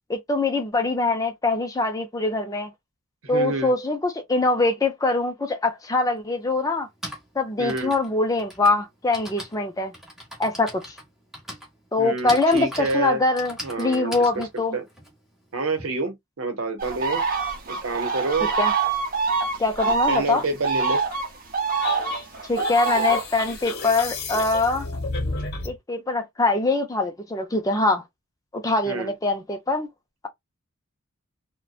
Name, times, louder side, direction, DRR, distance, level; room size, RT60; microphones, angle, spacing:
voice 1, 0.1-2.7 3.3-6.9 7.4-9.9 10.4-11.0 11.9-14.8 18.6-18.7 19.6-20.4 22.5-24.9 25.6-28.0 28.5-29.9, left 3 dB, 15° left, 0.4 m, -23 dB
voice 2, 3.2-3.7 7.6-7.9 12.0-13.2 13.6-14.4 14.7-14.8 15.5-17.2 17.7-18.5 19.8-21.0 28.8-29.1, right 3 dB, 75° right, 0.8 m, -28 dB
Typing, 5.7-5.8 6.7-15.8, equal, ahead, 0.8 m, -40 dB
sound 1, 16.8-23.6, right 5 dB, 40° right, 0.7 m, -25 dB
sound 2, 21.8-25.8, left 3 dB, 50° left, 0.7 m, -31 dB
2.7 x 2.1 x 2.3 m
head